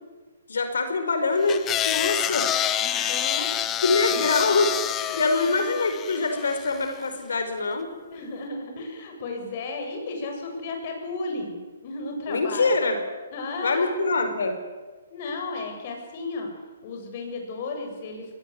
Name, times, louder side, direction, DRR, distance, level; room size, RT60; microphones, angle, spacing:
voice 1, 0.5-2.5 2.9-3.1 3.8-8.0 12.3-13.0 13.6-14.6, left 3 dB, 80° left, 7 dB, 5.0 m, -24 dB
sound 1, 1.5-6.8, left 11 dB, 15° left, 1.0 m, -27 dB
voice 2, 2.8-4.2 5.0-5.2 5.5-5.6 8.1-12.7 13.3-13.9 15.1-16.5 16.8-18.4, left 3 dB, 40° left, 3 dB, 7.5 m, -34 dB
22.5 x 18.5 x 9.6 m, 1.4 s
hypercardioid pair, 155°, 0 cm